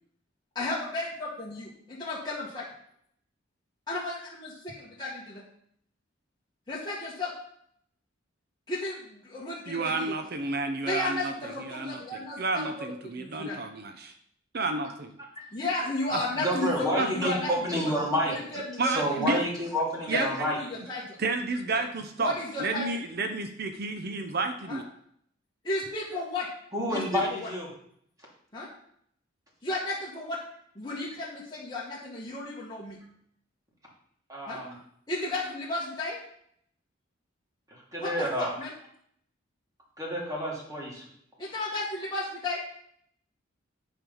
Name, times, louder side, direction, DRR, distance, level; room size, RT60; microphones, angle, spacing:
voice 1, 0.5-2.6 3.9-5.4 6.7-7.3 8.7-10.1 10.8-12.9 13.2-13.6 15.5-17.5 17.8-17.9 18.5-19.4 20.1-21.2 22.2-22.9 24.7-24.8 25.6-26.5 26.9-27.5 28.5-28.7 29.6-30.4 30.7-33.0 34.5-34.6 35.1-36.2 38.0-38.7 41.4-42.6, left 2 dB, 20° left, -8 dB, 1.8 m, -33 dB
voice 2, 9.7-11.3 11.6-14.1 14.5-15.1 16.1-16.2 17.0-17.3 18.8-19.4 20.1-20.5 21.2-22.3 22.6-24.8, right 3 dB, 55° right, 6 dB, 0.8 m, -31 dB
voice 3, 16.3-18.4 18.8-20.6 26.7-27.7 34.3-34.8 37.7-38.5 40.0-41.1, equal, 20° right, -4 dB, 3.0 m, -29 dB
9.1 x 5.3 x 5.5 m, 0.68 s
head